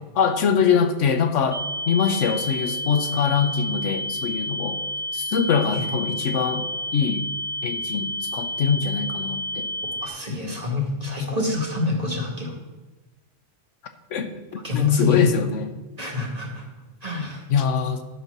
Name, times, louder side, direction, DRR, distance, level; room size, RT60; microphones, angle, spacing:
voice 1, 0.1-4.8 5.1-6.7 6.9-7.3 7.6-9.7 10.4-10.6 14.1-14.3 14.7-15.8 17.5-18.0, left 6 dB, 90° left, 8 dB, 1.2 m, -23 dB
sound 1, 1.5-10.1, equal, 5° right, 0.7 m, -30 dB
voice 2, 10.0-12.5 14.6-15.2 16.0-16.6 17.0-17.4, left 4 dB, 30° right, -1 dB, 2.1 m, -26 dB
11.0 x 5.7 x 6.6 m, 1.2 s
omnidirectional pair, 1.2 m